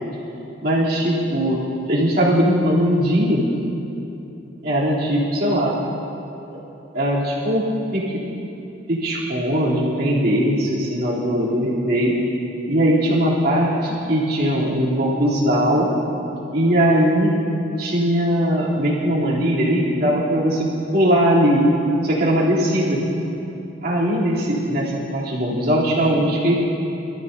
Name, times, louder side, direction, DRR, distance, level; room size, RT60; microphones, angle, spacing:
voice 1, 0.6-1.6 1.9-3.5 4.6-5.7 6.5-6.6 6.9-7.6 7.9-8.2 8.9-12.1 12.6-15.9 16.5-17.3 17.8-20.7 20.9-21.7 22.0-23.0 23.8-26.5, equal, 50° right, -7 dB, 3.2 m, -19 dB
24.5 x 13.5 x 2.7 m, 3.0 s
head